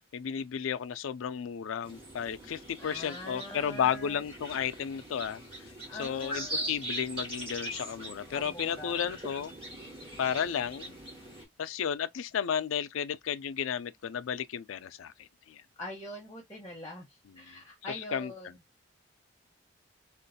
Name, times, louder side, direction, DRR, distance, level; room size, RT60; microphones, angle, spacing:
voice 1, 0.1-5.4 5.9-9.5 10.2-11.0 11.6-15.6 17.3-17.4 17.9-18.3, left 8 dB, 80° left, 0.4 m, -33 dB
sound 1, 1.8-11.5, right 1 dB, 25° right, 1.6 m, -41 dB
voice 2, 2.8-4.2 5.9-6.8 8.3-9.0 15.8-17.0 17.4-18.5, left 1 dB, 15° left, 0.9 m, -43 dB
3.7 x 2.5 x 2.7 m
head